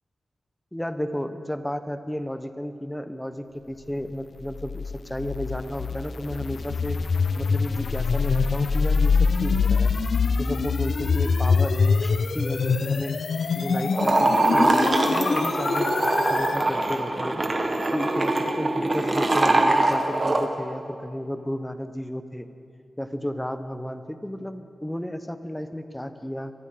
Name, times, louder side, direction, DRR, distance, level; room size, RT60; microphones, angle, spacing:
voice 1, 0.7-7.0 7.4-9.9 10.3-13.2 13.5-17.4 17.9-22.5 23.0-26.5, equal, 5° left, 9 dB, 0.9 m, -33 dB
sound 1, 4.5-16.6, left 4 dB, 70° left, 0.6 m, -24 dB
sound 2, 13.9-20.5, right 2 dB, 30° right, 1.3 m, -23 dB
23.5 x 14.0 x 3.8 m, 2.5 s
wide cardioid pair, 90°, 0 cm